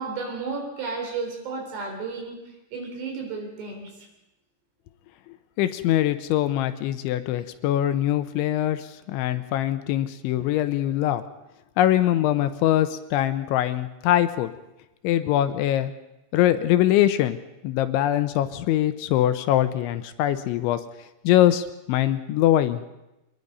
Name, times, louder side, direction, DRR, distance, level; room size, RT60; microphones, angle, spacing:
voice 1, 0.0-2.4 2.7-3.9, right 4 dB, 60° right, 2 dB, 6.0 m, -32 dB
voice 2, 5.6-11.2 11.8-14.5 15.0-15.9 16.3-17.4 17.6-20.8 21.2-22.8, left 12 dB, 80° left, 10 dB, 3.2 m, -22 dB
25.0 x 20.0 x 5.4 m, 0.94 s
omnidirectional pair, 5.4 m